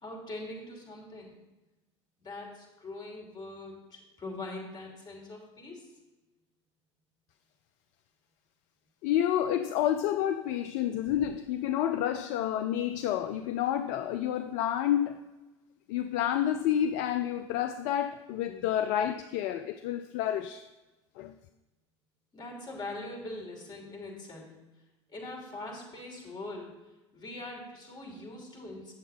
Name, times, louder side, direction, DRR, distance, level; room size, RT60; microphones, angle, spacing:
voice 1, 0.0-1.4 2.2-5.9 22.3-24.5 25.1-26.7 27.1-28.9, left 2 dB, 30° left, -1 dB, 2.9 m, -42 dB
voice 2, 9.0-15.3 15.9-20.7 21.2-21.3, left 10 dB, 55° left, 8 dB, 0.5 m, -29 dB
8.7 x 7.2 x 4.2 m, 1.1 s
figure-of-eight pair, 75°, 15 cm